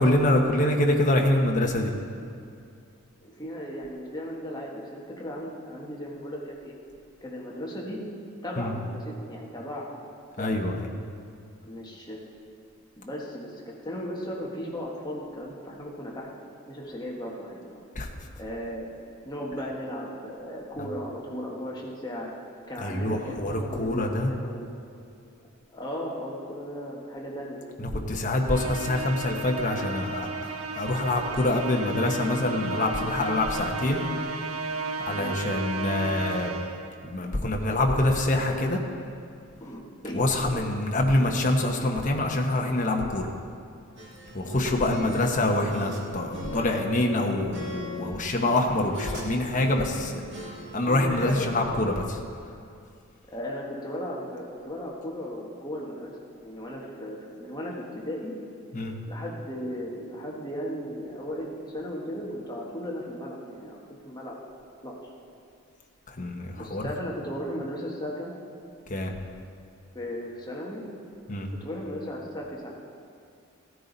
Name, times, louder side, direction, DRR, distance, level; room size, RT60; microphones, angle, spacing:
voice 1, 0.0-1.9 8.6-8.7 10.4-10.9 17.9-18.1 22.8-24.3 27.8-34.0 35.1-36.5 37.0-38.8 40.1-43.3 44.3-50.2 50.7-52.2 58.7-59.0 66.1-66.8 68.9-69.1 71.3-71.5, left 1 dB, 35° left, 1 dB, 1.1 m, -25 dB
voice 2, 3.2-6.7 7.2-8.0 8.4-9.9 10.4-10.6 11.6-12.2 13.0-16.3 16.7-17.8 18.4-18.9 19.2-22.3 22.7-24.7 25.7-27.6 35.1-35.4 39.6-40.5 45.1-45.2 50.8-51.5 53.3-56.1 56.4-58.3 59.0-63.8 64.0-64.4 64.8-65.0 66.6-68.3 69.9-70.9 71.5-72.7, equal, 20° left, -3 dB, 1.5 m, -36 dB
Musical instrument, 28.5-37.0, right 2 dB, 70° right, 0.8 m, -33 dB
sound 1, 44.0-46.0 46.3-49.3 49.5-51.4, equal, 55° right, 2.2 m, -40 dB
16.0 x 9.5 x 4.1 m, 2.4 s
head